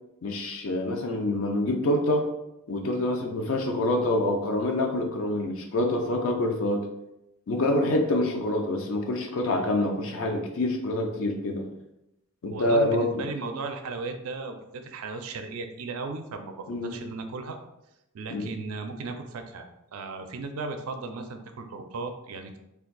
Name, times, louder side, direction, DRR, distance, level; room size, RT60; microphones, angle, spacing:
voice 1, 0.2-2.3 2.7-6.9 7.5-11.6 12.4-13.3 16.7-16.9 18.3-18.5, left 1 dB, 70° left, 3 dB, 0.5 m, -26 dB
voice 2, 12.5-17.6 18.1-22.6, right 3 dB, 85° right, 6 dB, 0.4 m, -36 dB
2.5 x 2.3 x 3.8 m, 0.87 s
head